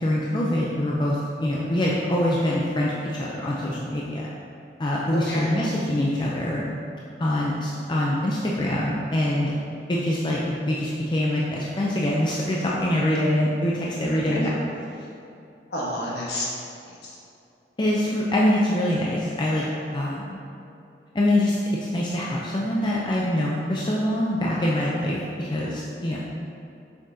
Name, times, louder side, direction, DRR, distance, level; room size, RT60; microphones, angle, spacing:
voice 1, 0.0-4.3 4.8-6.6 7.2-9.5 9.9-14.5 17.8-20.4 21.1-26.2, left 1 dB, 25° left, -5 dB, 0.5 m, -24 dB
voice 2, 5.1-5.6 14.1-14.5 15.7-16.4 16.9-17.1, left 1 dB, 65° left, -5 dB, 1.3 m, -30 dB
6.2 x 5.9 x 2.7 m, 2.6 s
head